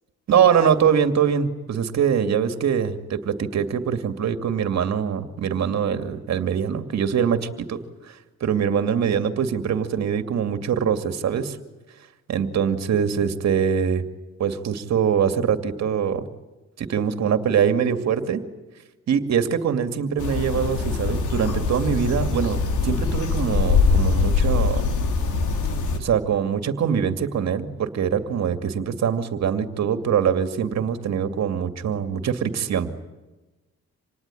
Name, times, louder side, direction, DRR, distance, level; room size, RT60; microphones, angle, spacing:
voice 1, 0.3-7.8 8.1-8.2 8.4-11.6 12.3-14.0 14.4-16.3 16.8-18.4 19.1-24.9 26.0-32.9, right 7 dB, 60° right, 8 dB, 2.4 m, -23 dB
sound 1, 20.2-26.0, left 4 dB, 80° left, 3.7 m, -22 dB
27.0 x 19.0 x 10.0 m, 1.1 s
cardioid pair, 90°, 30 cm